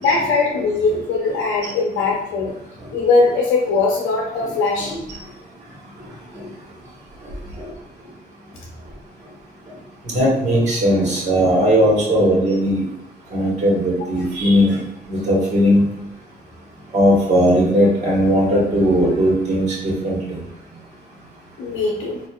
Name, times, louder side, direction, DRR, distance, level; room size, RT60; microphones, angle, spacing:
voice 1, 0.0-2.5 2.9-5.0 21.6-22.2, left 3 dB, 85° left, -2 dB, 0.7 m, -20 dB
voice 2, 4.8-5.2 7.6-7.7 10.1-12.8 13.3-14.8 15.1-15.8 16.9-20.2, equal, 35° right, -4 dB, 1.4 m, -17 dB
4.1 x 2.5 x 2.3 m, 0.89 s
cardioid pair, 90°, 20 cm